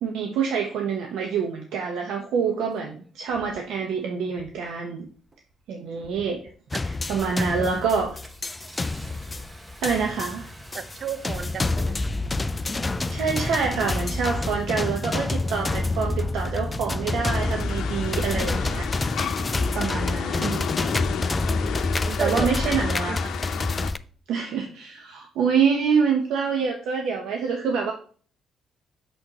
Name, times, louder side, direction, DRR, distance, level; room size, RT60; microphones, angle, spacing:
voice 1, 0.0-5.1 5.7-6.4 6.8-8.2 9.8-10.5 13.1-18.9 19.7-20.7 22.2-23.2 24.3-27.9, right 6 dB, 85° right, 1.0 m, -26 dB
Engine starting, 2.5-2.6 3.3-3.6 4.3-4.6 5.0-5.5 6.0-6.5 6.9-7.1 7.4-18.8, right 2 dB, 20° right, 1.0 m, -39 dB
sound 1, 6.7-24.0, left 3 dB, 25° left, 0.4 m, -28 dB
voice 2, 6.7-7.9 10.7-12.1 22.0-22.7 23.1-23.3, right 6 dB, 50° right, 0.6 m, -34 dB
sound 2, 17.2-23.9, left 8 dB, 75° left, 0.8 m, -32 dB
6.4 x 6.3 x 2.9 m
cardioid pair, 90°, 0 cm